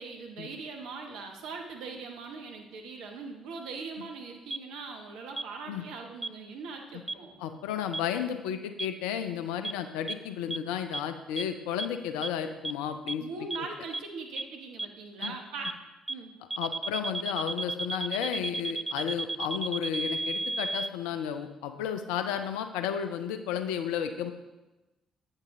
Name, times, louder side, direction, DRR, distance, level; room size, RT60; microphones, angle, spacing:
voice 1, 0.0-7.4 13.2-15.8 16.1-16.3, right 4 dB, 60° right, 2 dB, 1.0 m, -41 dB
sound 1, 4.5-4.6 5.4-5.5 6.2-6.3 7.1-7.2 7.9-8.0 8.8-8.9 9.6-9.7 10.1-10.2 10.5-10.6 10.9-11.0 11.4-11.5 11.8-11.9 12.2-12.3 12.6-12.7 13.1-13.2 13.5-13.6 13.9-14.0 14.4-14.5 14.8-14.9 15.2-15.3 15.6-15.7 16.1-16.2 16.5-20.9, right 3 dB, 15° right, 0.3 m, -32 dB
voice 2, 7.4-13.2 15.2-15.3 16.6-24.3, left 9 dB, 65° left, 8 dB, 0.5 m, -33 dB
8.4 x 6.5 x 3.6 m, 1.1 s
figure-of-eight pair, 45°, 0 cm